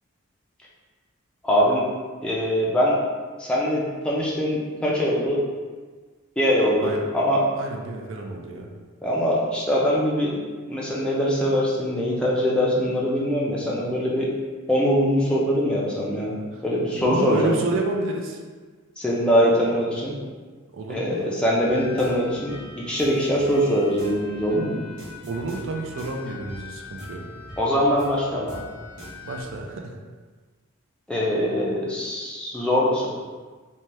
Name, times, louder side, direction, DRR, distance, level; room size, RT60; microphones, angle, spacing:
voice 1, 1.4-1.8 2.2-3.0 3.4-5.4 6.4-7.4 9.0-10.3 10.7-14.3 14.7-16.3 16.6-17.6 19.0-20.2 20.9-24.8 27.6-28.6 31.1-33.1, equal, 5° left, -6 dB, 0.4 m, -22 dB
voice 2, 7.6-8.7 16.5-16.6 17.0-18.4 20.7-21.2 25.3-27.2 29.2-29.9, right 2 dB, 60° right, 1 dB, 0.4 m, -30 dB
sound 1, 21.6-29.4, left 2 dB, 40° right, 1.0 m, -41 dB
2.7 x 2.2 x 3.2 m, 1.4 s
head